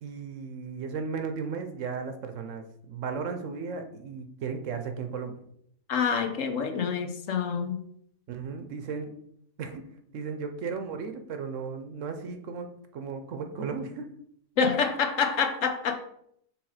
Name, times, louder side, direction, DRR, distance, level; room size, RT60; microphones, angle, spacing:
voice 1, 0.0-5.4 8.3-9.1 9.6-9.8 10.1-12.7 12.9-14.1, right 5 dB, 70° right, 7 dB, 1.1 m, -35 dB
voice 2, 5.9-7.8 14.6-16.0, left 6 dB, 70° left, 6 dB, 1.2 m, -27 dB
6.4 x 3.4 x 4.8 m, 0.69 s
omnidirectional pair, 1.4 m